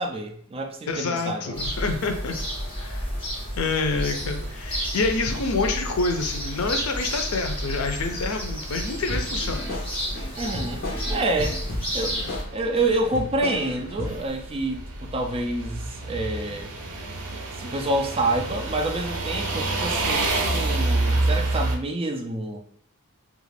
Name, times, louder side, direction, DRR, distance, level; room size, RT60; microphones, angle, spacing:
voice 1, 0.0-1.5 10.4-11.6 11.9-12.2 12.5-16.7 17.6-22.6, right 2 dB, 25° right, 3 dB, 0.4 m, -28 dB
voice 2, 0.9-2.4 2.8-3.1 3.6-9.7, left 3 dB, 80° left, 5 dB, 0.5 m, -27 dB
sound 1, 1.5-12.4, equal, 25° left, 1.1 m, -31 dB
sound 2, 4.2-21.8, right 2 dB, 85° right, 0.5 m, -31 dB
sound 3, 9.1-14.3, left 1 dB, 45° left, 0.8 m, -34 dB
2.4 x 2.3 x 3.2 m, 0.62 s
head